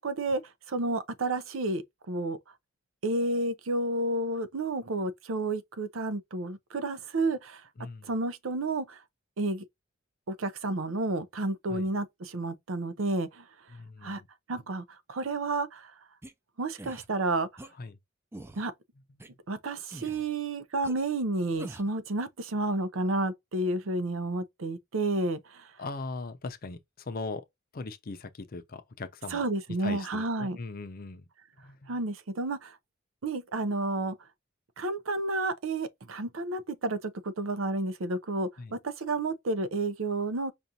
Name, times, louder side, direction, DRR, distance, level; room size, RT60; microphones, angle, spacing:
voice 1, 0.0-0.4 0.7-2.4 3.0-7.6 8.1-9.0 9.4-9.6 10.3-13.5 14.0-14.2 14.5-15.9 16.6-17.5 18.5-18.7 19.5-25.7 29.3-30.6 31.9-32.8 33.2-34.2 34.8-40.5, right 2 dB, 80° right, 0.6 m, -31 dB
voice 2, 7.8-8.1 11.7-11.9 13.7-14.3 17.8-18.0 25.8-27.4 27.7-29.5 29.8-31.3 31.6-32.0 38.6-38.7, left 3 dB, 45° left, 0.6 m, -39 dB
sound 1, 16.2-16.3 16.8-17.1 17.6-17.7 18.3-18.6 19.2-19.3 19.9-20.3 20.8-20.9 21.6-21.9, right 1 dB, 10° right, 0.4 m, -44 dB
5.1 x 2.4 x 2.7 m
head